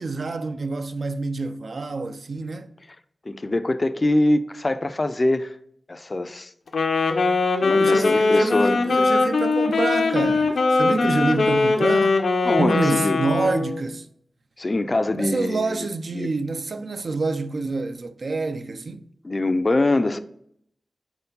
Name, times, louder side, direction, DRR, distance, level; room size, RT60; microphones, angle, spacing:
voice 1, 0.0-2.7 7.7-12.2 12.6-14.1 15.2-19.0, right 3 dB, 60° right, 0.4 m, -27 dB
voice 2, 3.3-5.5 5.9-6.5 7.6-8.8 12.4-13.2 14.6-15.8 16.2-16.3 19.2-20.2, left 2 dB, 35° left, 0.4 m, -23 dB
Wind instrument woodwind instrument, 6.7-13.8, left 3 dB, 85° left, 0.7 m, -21 dB
4.5 x 4.2 x 5.4 m
wide cardioid pair, 105°, 0 cm